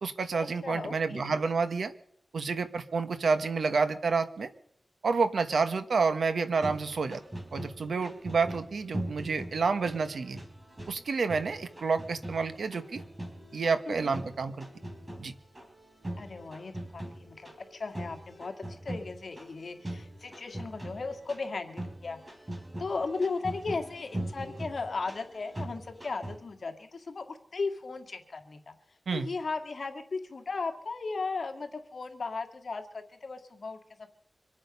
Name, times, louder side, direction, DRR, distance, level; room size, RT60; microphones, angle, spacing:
voice 1, 0.0-1.9 2.3-4.5 5.0-7.2 7.5-10.4 10.9-13.0 13.5-14.7 15.2-15.3 29.1-29.3, right 4 dB, 85° right, 10 dB, 1.3 m, -29 dB
voice 2, 0.6-1.4 13.9-14.2 16.2-22.2 22.8-28.7 29.1-34.1, left 4 dB, 65° left, 4 dB, 2.1 m, -36 dB
sound 1, 6.5-26.4, right 1 dB, 25° right, 3.9 m, -42 dB
25.5 x 8.8 x 5.4 m, 0.64 s
wide cardioid pair, 75°, 0 cm